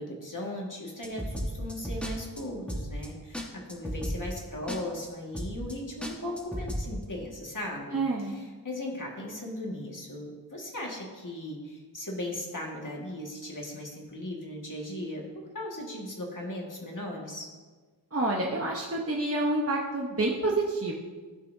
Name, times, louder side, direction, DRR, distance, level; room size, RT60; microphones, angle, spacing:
voice 1, 0.0-15.2 15.5-17.5, left 1 dB, 45° left, -1 dB, 1.8 m, -37 dB
sound 1, 1.0-2.1 2.4-2.5 2.7-3.1 3.3-3.4 3.7-4.4 4.7-5.1 5.3-5.7 6.0-6.9, equal, 5° left, 1.3 m, -34 dB
voice 2, 7.9-8.3 18.1-20.9, right 2 dB, 35° right, -2 dB, 0.9 m, -28 dB
14.0 x 5.5 x 2.7 m, 1.4 s
wide cardioid pair, 50°, 43 cm